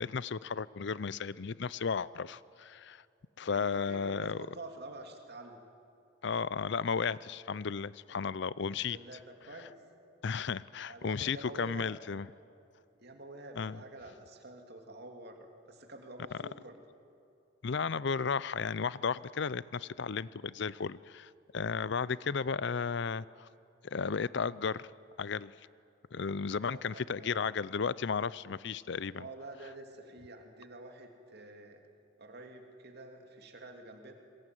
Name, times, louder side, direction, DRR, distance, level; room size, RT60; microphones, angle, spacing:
voice 1, 0.0-3.0 3.4-4.5 6.2-9.0 10.2-12.3 13.5-13.8 17.6-23.5 23.8-24.9 25.2-25.5 26.1-29.3, left 5 dB, 60° left, 19 dB, 0.6 m, -34 dB
voice 2, 3.4-5.6 8.7-9.7 10.8-11.9 13.0-16.8 26.6-27.5 29.2-31.8 32.2-34.1, right 2 dB, 55° right, 4 dB, 2.8 m, -48 dB
25.5 x 21.5 x 9.3 m, 2.5 s
head